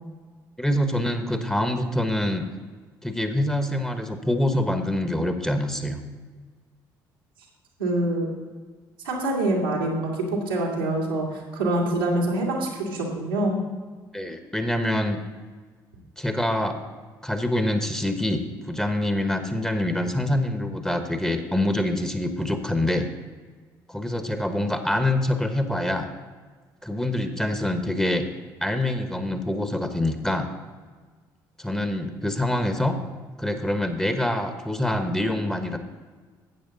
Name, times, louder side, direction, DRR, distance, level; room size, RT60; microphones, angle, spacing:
voice 1, 0.6-2.5 3.0-6.0 14.1-15.2 16.2-16.8 17.2-18.4 18.7-23.1 23.9-26.1 26.8-28.2 28.6-30.5 31.6-33.0 33.4-35.8, left 1 dB, 5° left, 7 dB, 1.2 m, -25 dB
voice 2, 7.8-8.3 9.0-13.5, right 1 dB, 90° right, -4 dB, 2.1 m, -25 dB
12.0 x 8.6 x 4.0 m, 1.5 s
hypercardioid pair, 50°, 11 cm